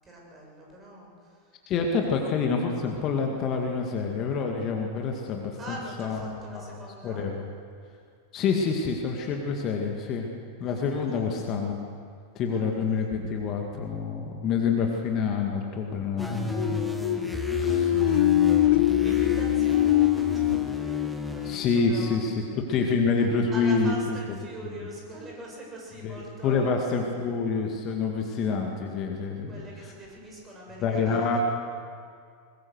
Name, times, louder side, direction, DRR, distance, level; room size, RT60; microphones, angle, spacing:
voice 1, 0.0-1.5 5.6-7.3 10.6-11.4 12.5-13.1 17.7-18.2 18.5-22.2 23.2-27.0 29.5-31.4, right 1 dB, 20° right, -1 dB, 7.2 m, -43 dB
voice 2, 1.7-6.7 7.0-7.5 8.3-10.3 10.6-11.8 12.4-17.9 18.7-18.9 21.4-23.9 24.7-24.9 26.0-26.2 26.4-29.9 30.8-31.4, left 5 dB, 35° left, 2 dB, 2.2 m, -27 dB
sound 1, 16.2-21.6, right 1 dB, 5° right, 1.7 m, -34 dB
sound 2, 16.4-22.1, left 14 dB, 50° left, 0.6 m, -24 dB
22.0 x 21.5 x 6.5 m, 2.2 s
figure-of-eight pair, 90°, 0 cm